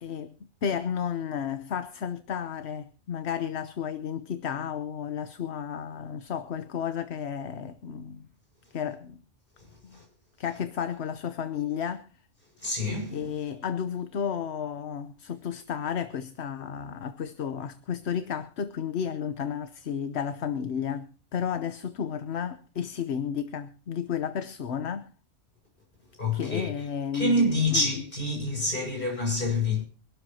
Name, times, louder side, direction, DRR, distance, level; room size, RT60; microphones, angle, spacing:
voice 1, 0.0-8.2 8.7-9.2 9.8-10.0 10.4-12.1 13.1-25.1 26.3-27.9, left 8 dB, 65° left, 1.1 m, -32 dB
voice 2, 12.6-13.3 26.2-26.7 27.1-29.8, left 2 dB, 45° left, 6.7 m, -27 dB
25.5 x 12.5 x 2.8 m
omnidirectional pair, 1.2 m